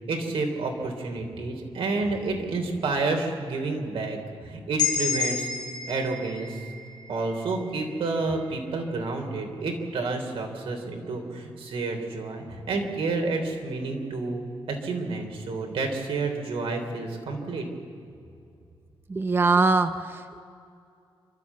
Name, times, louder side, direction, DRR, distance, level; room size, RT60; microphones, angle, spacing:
voice 1, 0.1-5.5 5.9-6.6 7.1-14.4 14.7-17.6, right 3 dB, 85° right, 3 dB, 3.3 m, -29 dB
sound 1, 4.8-8.6, left 6 dB, 45° left, 4.4 m, -31 dB
voice 2, 19.1-20.4, right 3 dB, 25° right, 10 dB, 0.6 m, -23 dB
28.5 x 13.0 x 8.4 m, 2.5 s
wide cardioid pair, 155°, 9 cm